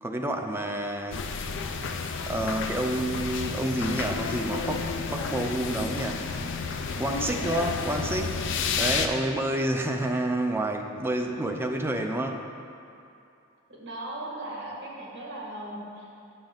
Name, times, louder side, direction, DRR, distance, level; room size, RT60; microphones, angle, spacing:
voice 1, 0.0-1.3 2.3-6.3 7.0-8.4 8.8-12.4, right 1 dB, 10° right, 3 dB, 0.4 m, -29 dB
sound 1, 1.1-9.1, left 5 dB, 65° left, 0.4 m, -31 dB
voice 2, 13.7-16.2, right 1 dB, 60° right, -3 dB, 1.6 m, -38 dB
8.8 x 6.1 x 3.8 m, 2.5 s
head